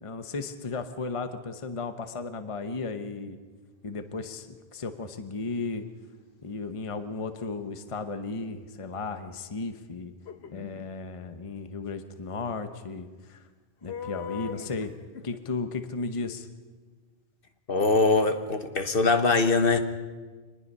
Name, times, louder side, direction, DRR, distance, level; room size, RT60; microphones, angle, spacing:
voice 1, 0.0-3.4 3.8-5.8 6.4-10.1 10.5-13.4 13.8-14.9 15.2-16.5, left 4 dB, 30° left, 8 dB, 1.0 m, -35 dB
sound 1, 10.2-10.8 13.9-15.4, left 7 dB, 85° left, 1.3 m, -39 dB
voice 2, 17.7-19.8, left 3 dB, 60° left, 8 dB, 1.4 m, -22 dB
25.0 x 20.0 x 5.5 m, 1.4 s
omnidirectional pair, 1.1 m